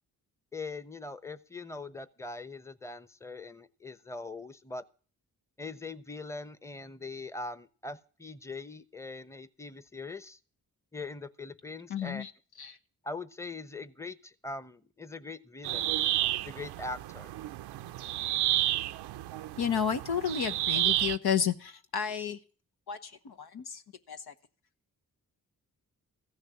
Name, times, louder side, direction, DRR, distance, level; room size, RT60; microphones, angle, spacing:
voice 1, 0.5-4.8 5.6-10.4 10.9-12.2 13.0-15.9 16.4-17.3, left 3 dB, 5° left, 15 dB, 1.0 m, -41 dB
voice 2, 11.9-12.3 12.6-12.7 19.6-22.4 22.9-23.0 23.2-23.6 24.1-24.3, left 8 dB, 70° left, 8 dB, 1.1 m, -31 dB
sound 1, 15.6-21.2, right 14 dB, 85° right, 0.6 m, -31 dB
15.0 x 6.5 x 8.6 m, 0.40 s
supercardioid pair, 45°, 39 cm